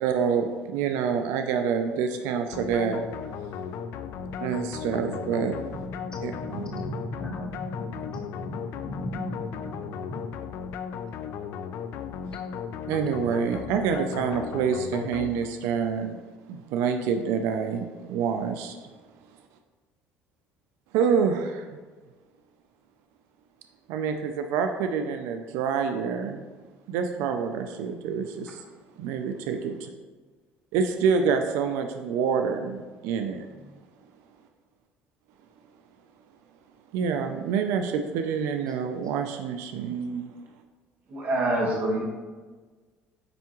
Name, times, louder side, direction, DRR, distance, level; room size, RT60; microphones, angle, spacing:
voice 1, 0.0-3.0 4.4-5.6 6.2-6.6 12.9-16.2 16.5-18.8 20.9-21.7 23.9-26.4 26.9-28.6 29.0-29.9 30.7-33.5 36.9-40.3, right 6 dB, 85° right, 6 dB, 0.4 m, -27 dB
sound 1, 2.5-15.8, left 7 dB, 65° left, 0.4 m, -36 dB
voice 2, 3.2-10.2 12.3-12.4 13.5-13.7 33.6-33.8, equal, 15° left, -1 dB, 1.3 m, -39 dB
voice 3, 41.1-42.0, right 1 dB, 45° right, -3 dB, 1.9 m, -25 dB
9.0 x 3.5 x 3.0 m, 1.4 s
cardioid pair, 130°, 4 cm